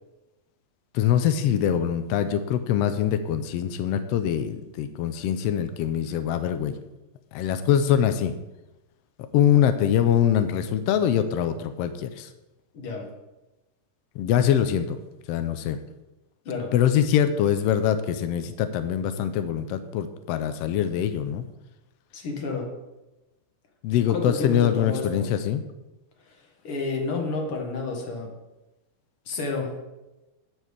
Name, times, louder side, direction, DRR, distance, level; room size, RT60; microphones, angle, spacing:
voice 1, 0.9-6.7 7.3-8.3 9.3-12.3 14.1-15.0 15.3-15.8 16.7-21.4 23.8-25.6, left 9 dB, 85° left, 9 dB, 1.4 m, -23 dB
voice 2, 12.7-13.1 16.5-16.7 22.1-22.7 24.1-25.3 26.3-28.3 29.3-29.7, left 3 dB, 50° left, 2 dB, 2.3 m, -31 dB
11.0 x 4.5 x 8.1 m, 1.0 s
omnidirectional pair, 3.5 m